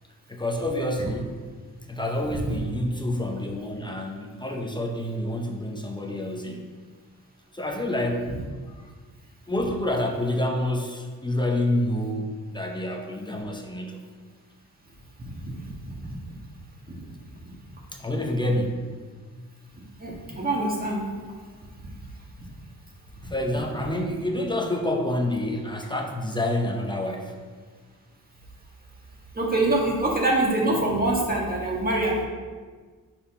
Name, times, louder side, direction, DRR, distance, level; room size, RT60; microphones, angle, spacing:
voice 1, 0.3-1.4 1.9-6.7 7.5-8.4 8.7-8.8 9.5-14.1 17.9-19.0 23.2-27.4, left 1 dB, 15° left, 1 dB, 0.6 m, -28 dB
voice 2, 15.2-15.7 16.0-16.1 20.0-21.0 21.8-21.9 29.3-32.2, right 2 dB, 25° right, -3 dB, 1.5 m, -25 dB
5.5 x 4.3 x 5.6 m, 1.5 s
wide cardioid pair, 130°, 35 cm